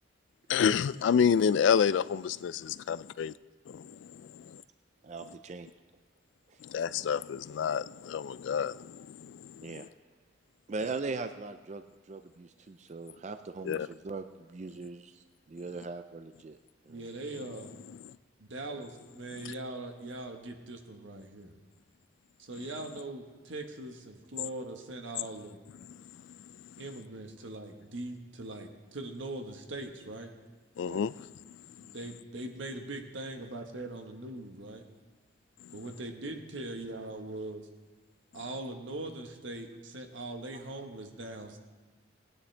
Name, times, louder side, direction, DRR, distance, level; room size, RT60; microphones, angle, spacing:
voice 1, 0.5-3.3 3.7-4.6 6.6-9.7 13.7-13.9 25.9-26.0 30.8-31.1 31.5-31.6 35.6-35.7, left 7 dB, 70° left, 16 dB, 0.3 m, -29 dB
voice 2, 5.0-5.7 6.5-6.6 6.9-7.1 9.6-9.9 10.7-16.6 16.8-17.1 30.8-31.0 40.5-40.6, right 3 dB, 35° right, 9 dB, 0.4 m, -40 dB
voice 3, 16.9-17.8 18.4-21.5 22.4-25.6 26.8-30.3 31.8-34.8 35.7-37.7 38.3-41.6, right 2 dB, 75° right, 4 dB, 1.3 m, -41 dB
19.5 x 9.9 x 3.3 m, 1.3 s
head